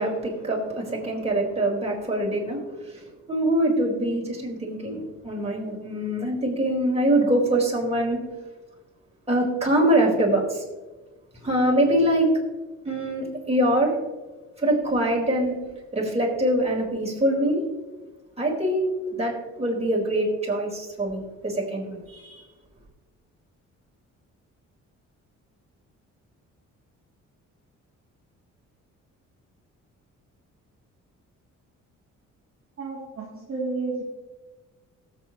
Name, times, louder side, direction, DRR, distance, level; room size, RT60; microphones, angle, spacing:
voice 1, 0.0-8.2 9.3-10.6 11.4-12.3 12.8-13.9 14.6-15.6 15.9-17.6 18.4-22.4, right 1 dB, 20° right, -3 dB, 4.2 m, -24 dB
voice 2, 32.8-34.0, right 3 dB, 45° right, -4 dB, 2.1 m, -31 dB
18.5 x 8.0 x 3.0 m, 1.2 s
cardioid pair, 90°, 30 cm